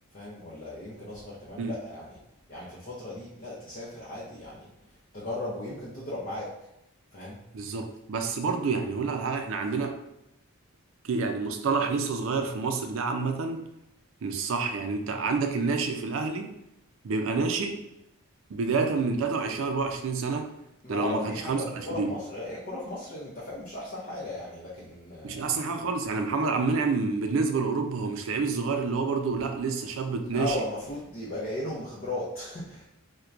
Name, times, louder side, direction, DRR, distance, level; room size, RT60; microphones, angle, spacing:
voice 1, 0.1-2.2 2.5-4.7 5.1-6.5 7.1-7.4 20.8-25.4 30.3-32.9, left 1 dB, 40° left, -7 dB, 0.6 m, -36 dB
voice 2, 7.5-10.0 11.0-13.7 14.2-16.6 17.0-17.8 18.5-20.6 20.9-22.1 25.2-30.6, right 4 dB, 65° right, 5 dB, 0.4 m, -28 dB
4.3 x 2.2 x 2.5 m, 0.84 s
head